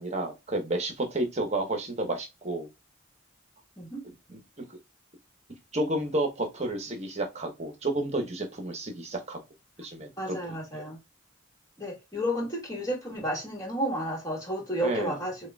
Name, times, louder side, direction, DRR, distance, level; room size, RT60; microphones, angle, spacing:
voice 1, 0.0-2.7 4.3-4.4 4.7-4.8 5.7-9.4 9.8-10.9 14.8-15.1, right 1 dB, 35° right, 1.1 m, -31 dB
voice 2, 10.2-11.0 11.8-15.5, equal, 15° left, 1.8 m, -32 dB
6.6 x 2.4 x 2.3 m
head